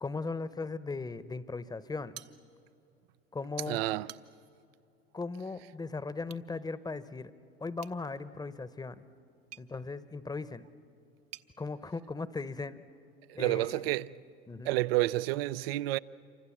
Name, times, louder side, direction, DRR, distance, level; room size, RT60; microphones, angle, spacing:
voice 1, 0.0-2.1 3.3-3.8 5.1-7.3 7.6-9.1 9.6-10.6 11.6-12.8 13.3-13.9 14.5-14.7, left 3 dB, 15° left, 0.9 m, -38 dB
sound 1, 2.1-2.9 3.3-3.4 3.8-4.6 6.2-6.5 7.8-11.5, right 13 dB, 55° right, 1.0 m, -53 dB
voice 2, 3.7-4.1 13.3-14.2 14.6-16.0, right 17 dB, 70° right, 0.6 m, -29 dB
27.5 x 25.0 x 7.3 m
hypercardioid pair, 80°, 31 cm